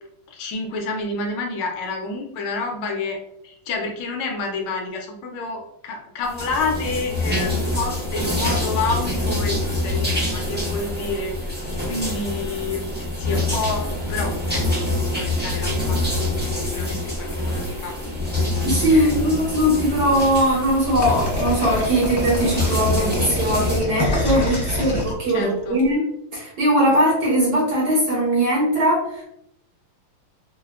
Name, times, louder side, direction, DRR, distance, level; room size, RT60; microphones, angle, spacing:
voice 1, 0.3-3.2 3.4-18.1 18.9-19.2 25.3-25.8, left 3 dB, 80° left, 2 dB, 1.3 m, -29 dB
sound 1, 6.3-23.8, left 2 dB, 10° right, 0.5 m, -25 dB
voice 2, 18.6-26.0 26.3-29.2, equal, 60° right, -5 dB, 1.3 m, -20 dB
sound 2, 21.0-25.8, left 1 dB, 35° left, 0.7 m, -26 dB
3.9 x 2.1 x 2.3 m, 0.77 s
omnidirectional pair, 2.4 m